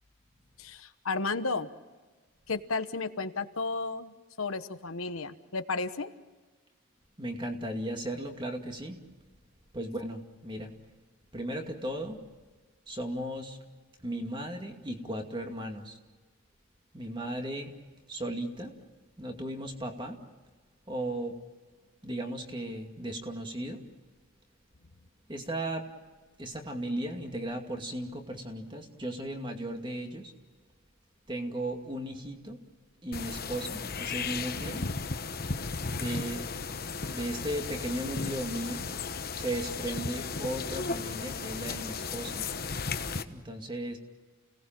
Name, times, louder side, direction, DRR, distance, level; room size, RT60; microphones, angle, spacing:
voice 1, 0.6-1.7 2.5-6.1, left 3 dB, 75° left, 9 dB, 1.2 m, -33 dB
voice 2, 7.2-9.1 9.7-10.7 11.3-12.2 12.9-13.6 14.0-16.0 16.9-17.8 18.1-18.8 19.2-20.2 20.9-21.4 22.0-23.8 25.3-25.9 26.4-30.3 31.3-32.6 33.0-34.8 35.9-36.5 37.1-39.1 39.3-42.4 43.3-44.0, right 1 dB, 20° right, 3 dB, 2.4 m, -36 dB
sound 1, 33.1-43.2, left 4 dB, 45° left, 1.1 m, -35 dB
29.5 x 18.5 x 7.6 m, 1.3 s
head